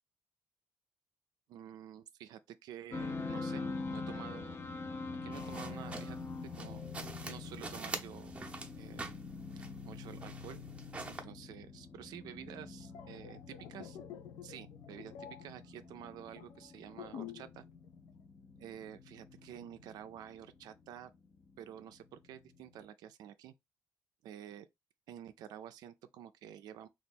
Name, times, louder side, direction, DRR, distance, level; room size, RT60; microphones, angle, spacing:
voice 1, 1.5-4.6 5.2-6.8 7.2-8.3 8.8-9.1 9.8-10.6 11.0-14.0 14.4-17.6 18.6-21.1 21.6-23.5 24.2-24.7 25.1-26.9, right 10 dB, 85° right, 0.4 m, -50 dB
sound 1, 2.9-22.9, left 4 dB, 35° left, 0.5 m, -45 dB
sound 2, 5.3-11.2, right 3 dB, 20° right, 0.6 m, -46 dB
sound 3, 12.7-17.6 17.8-18.1, left 9 dB, 85° left, 0.5 m, -49 dB
2.8 x 2.4 x 3.6 m
cardioid pair, 105°, 7 cm